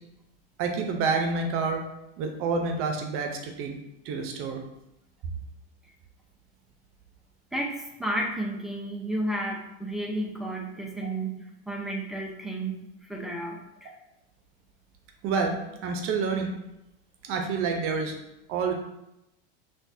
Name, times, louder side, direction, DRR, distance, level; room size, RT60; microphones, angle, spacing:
voice 1, 0.6-1.8 2.2-3.8 4.0-4.6 15.2-16.5 17.2-18.2 18.5-18.7, right 4 dB, 50° right, 4 dB, 0.8 m, -28 dB
voice 2, 7.5-12.8 13.1-13.9, right 1 dB, ahead, -1 dB, 0.7 m, -32 dB
6.0 x 2.5 x 2.7 m, 0.89 s
supercardioid pair, 125°, 29 cm